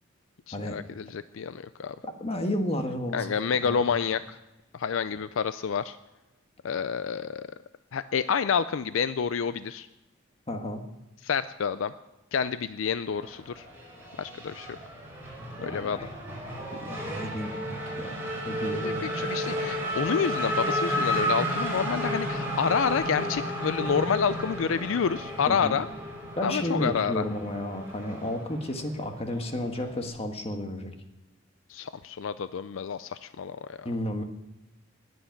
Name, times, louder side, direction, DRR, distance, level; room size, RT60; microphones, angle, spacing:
voice 1, 0.5-2.0 3.1-4.4 4.7-6.0 6.6-7.5 7.9-9.9 11.2-11.9 12.3-13.6 14.2-14.8 15.6-16.0 18.7-25.9 26.4-27.2 31.7-33.9, left 6 dB, 70° left, 13 dB, 0.4 m, -28 dB
voice 2, 2.2-3.3 3.5-3.8 10.5-10.8 15.6-16.1 16.7-19.0 25.5-25.8 26.4-30.9 33.8-34.2, left 1 dB, 30° left, 5 dB, 1.5 m, -32 dB
Race car auto racing / Accelerating revving vroom, 13.1-30.1, equal, 10° right, 5.0 m, -33 dB
20.0 x 7.9 x 5.9 m, 1.0 s
head